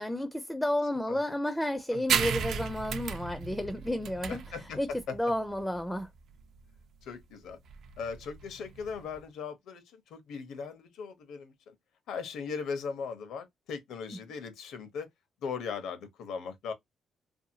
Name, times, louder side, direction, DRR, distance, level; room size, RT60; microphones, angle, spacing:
voice 1, 0.0-4.4 4.8-6.1, left 1 dB, 5° left, 0.4 m, -31 dB
sound 1, 2.1-9.2, right 7 dB, 70° right, 0.4 m, -35 dB
voice 2, 4.3-5.2 7.0-7.6 8.0-11.8 12.1-15.1 15.4-16.7, left 5 dB, 85° left, 0.8 m, -38 dB
2.7 x 2.5 x 2.7 m
cardioid pair, 105°, 0 cm